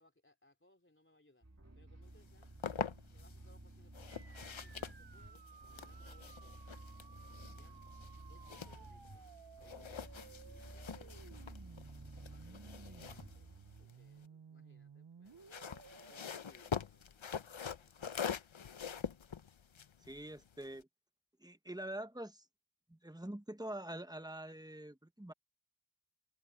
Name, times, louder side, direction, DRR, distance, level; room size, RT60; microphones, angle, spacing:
voice 1, 0.0-1.5 1.7-2.6 3.1-5.5 5.8-6.8 7.5-7.9 8.3-9.2 9.6-11.7 12.3-15.6 16.1-18.5, left 1 dB, 25° left, 3.8 m, -69 dB
sound 1, 1.4-13.9, right 1 dB, 35° right, 2.5 m, -54 dB
sound 2, 2.2-3.4 3.9-9.3 9.6-14.3 15.3-20.8, left 7 dB, 75° left, 0.8 m, -45 dB
sound 3, 4.1-16.2, right 6 dB, 60° right, 0.8 m, -58 dB
voice 2, 20.0-20.9 21.4-22.5 22.9-25.3, right 1 dB, 10° right, 1.1 m, -45 dB
wide cardioid pair, 40°, 47 cm